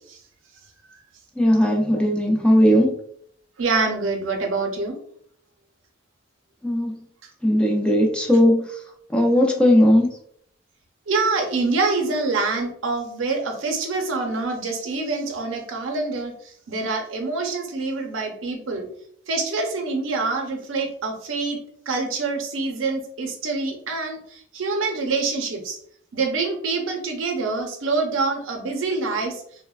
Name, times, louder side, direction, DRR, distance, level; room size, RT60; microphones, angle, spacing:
voice 1, 1.4-2.9 6.6-7.0 7.4-8.7 9.1-10.1, equal, 5° left, 0 dB, 0.4 m, -17 dB
voice 2, 3.6-5.0 11.1-16.3 16.7-18.9 19.3-21.6 21.9-25.8 26.1-29.4, right 3 dB, 85° right, 3 dB, 0.6 m, -25 dB
3.2 x 2.1 x 2.3 m, 0.65 s
head